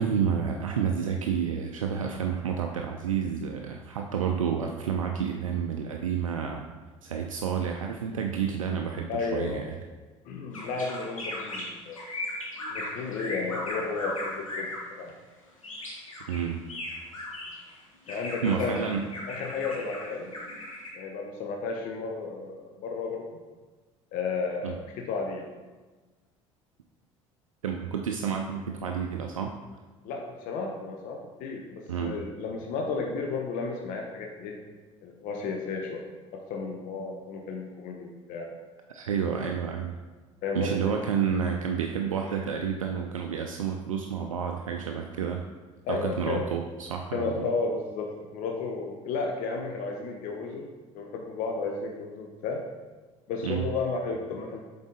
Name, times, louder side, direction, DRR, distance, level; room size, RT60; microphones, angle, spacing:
voice 1, 0.0-6.7 7.0-9.8 16.3-16.6 18.4-19.1 24.6-24.7 27.6-29.6 31.9-32.2 38.9-39.9 40.5-45.4 45.9-47.5 53.4-53.7, right 7 dB, 80° right, 3 dB, 0.4 m, -30 dB
voice 2, 9.1-9.7 10.3-12.0 12.7-14.7 15.0-15.1 18.1-18.9 19.3-20.3 20.9-23.3 24.1-25.5 30.0-34.6 35.0-36.1 36.3-38.6 40.4-40.9 45.8-46.5 47.1-50.7 50.9-52.6 53.3-54.7, left 4 dB, 55° left, 1 dB, 0.7 m, -33 dB
sound 1, 10.5-14.8 15.6-17.7 18.1-20.9, left 1 dB, 85° left, 1.1 m, -37 dB
7.2 x 3.9 x 3.8 m, 1.3 s
figure-of-eight pair, 60°, 17 cm